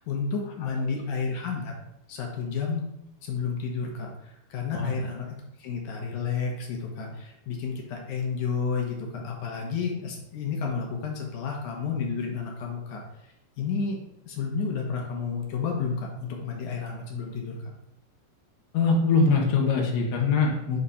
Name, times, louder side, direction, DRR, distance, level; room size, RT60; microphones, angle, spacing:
voice 1, 0.0-1.7 2.1-2.9 3.2-13.0 13.6-14.0 14.3-17.6, left 5 dB, 65° left, 0 dB, 1.9 m, -31 dB
voice 2, 18.7-20.8, left 4 dB, 85° left, -1 dB, 1.6 m, -22 dB
6.6 x 3.7 x 5.7 m, 0.82 s
omnidirectional pair, 4.9 m